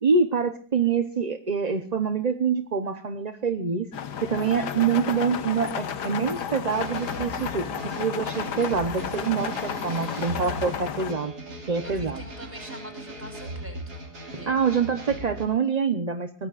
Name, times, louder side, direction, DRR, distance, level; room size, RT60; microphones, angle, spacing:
voice 1, 0.0-3.9 4.2-11.3 11.7-12.2 14.3-16.5, right 5 dB, 35° right, 7 dB, 0.7 m, -26 dB
sound 1, 3.9-11.1, left 7 dB, 75° left, 1.7 m, -32 dB
sound 2, 6.7-15.5, right 1 dB, 70° right, 3.8 m, -39 dB
voice 2, 9.8-10.4 11.8-14.0 14.3-14.7, equal, 5° right, 4 dB, 5.9 m, -45 dB
23.5 x 18.5 x 2.5 m, 0.38 s
omnidirectional pair, 1.8 m